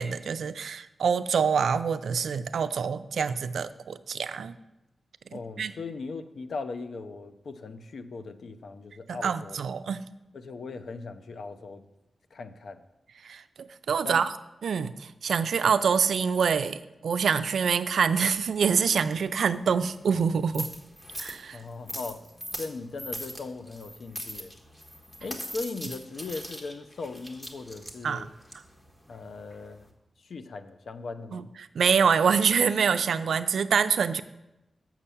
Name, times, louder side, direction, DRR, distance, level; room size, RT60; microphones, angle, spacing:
voice 1, 0.0-4.5 5.3-5.7 9.1-10.0 13.2-14.3 14.6-20.7 21.2-21.6 28.0-28.3 31.3-31.5 31.7-34.2, right 6 dB, 85° right, 13 dB, 0.4 m, -26 dB
voice 2, 5.3-9.6 10.3-11.9 12.3-12.8 14.0-14.2 21.5-22.2 22.6-24.5 25.2-28.3 29.1-29.8 30.2-31.4, left 3 dB, 75° left, 10 dB, 0.6 m, -39 dB
sound 1, 17.9-29.9, equal, 15° left, 1.4 m, -42 dB
7.3 x 5.7 x 6.8 m, 0.95 s
wide cardioid pair, 85°, 0 cm